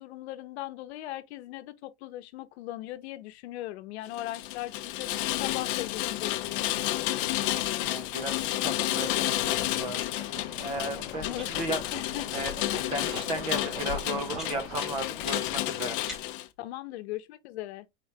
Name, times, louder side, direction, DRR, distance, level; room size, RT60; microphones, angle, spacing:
voice 1, 0.0-6.7 10.8-12.5 12.7-12.9 16.6-17.9, left 15 dB, 85° left, 0.8 m, -39 dB
Rain, 4.1-16.5, left 15 dB, 55° left, 0.5 m, -31 dB
sound 1, 5.2-15.2, right 3 dB, 65° right, 1.8 m, -45 dB
voice 2, 7.8-10.0 10.2-10.3 10.6-11.8 12.3-12.5 12.9-16.0, right 1 dB, 15° right, 0.4 m, -35 dB
sound 2, 16.4-16.6, left 2 dB, ahead, 1.3 m, -46 dB
4.5 x 2.8 x 3.2 m
supercardioid pair, 175°, 32 cm